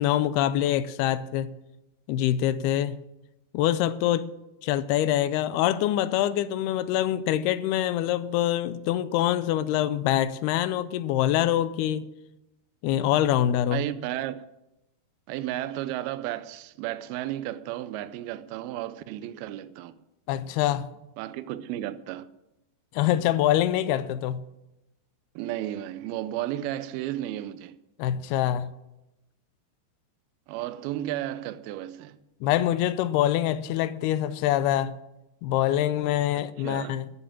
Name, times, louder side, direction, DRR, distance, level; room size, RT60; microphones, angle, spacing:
voice 1, 0.0-1.5 2.1-3.0 3.5-4.3 4.6-12.0 12.8-13.8 20.3-20.9 22.9-24.4 28.0-28.7 32.4-35.0 35.4-37.1, left 12 dB, 80° left, 2.5 m, -25 dB
voice 2, 13.7-14.5 15.3-19.9 21.2-22.3 25.4-27.8 30.5-32.2 36.6-37.0, right 13 dB, 80° right, 2.4 m, -33 dB
13.5 x 7.2 x 8.7 m
omnidirectional pair, 4.7 m